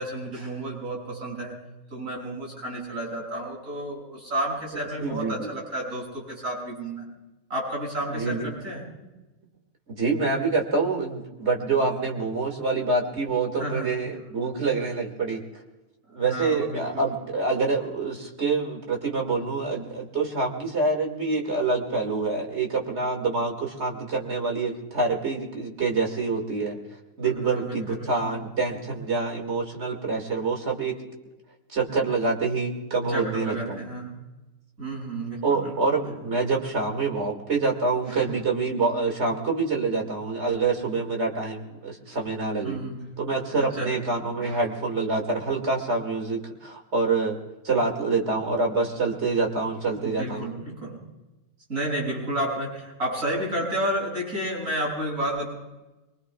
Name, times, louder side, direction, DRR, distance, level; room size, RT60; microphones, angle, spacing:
voice 1, 0.0-1.6 1.9-7.1 7.5-8.8 11.8-12.0 13.6-13.9 16.1-17.0 27.2-28.4 33.1-34.1 34.8-35.9 38.1-38.2 42.1-42.2 42.6-43.0 43.6-43.9 44.4-44.6 50.0-51.0 51.7-55.5, right 1 dB, 70° right, -3 dB, 7.4 m, -31 dB
voice 2, 5.0-5.5 8.1-8.5 9.9-15.4 16.1-26.8 27.2-31.0 31.7-33.8 35.4-42.8 43.2-47.4 47.6-50.6, right 3 dB, 55° right, 2 dB, 2.5 m, -26 dB
24.0 x 23.5 x 2.4 m, 1.0 s
omnidirectional pair, 1.4 m